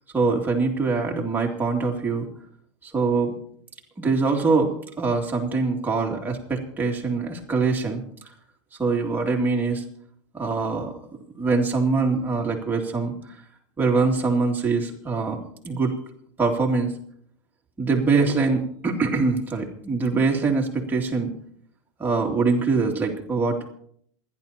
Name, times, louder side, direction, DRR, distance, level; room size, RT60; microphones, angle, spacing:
voice 1, 0.1-2.3 2.8-3.4 4.0-8.0 8.8-9.8 10.3-10.9 11.3-13.1 13.8-15.9 16.4-16.9 17.8-21.3 22.0-23.7, right 4 dB, 10° right, -1 dB, 2.6 m, -23 dB
27.5 x 11.5 x 2.9 m, 0.64 s
supercardioid pair, 140°, 16 cm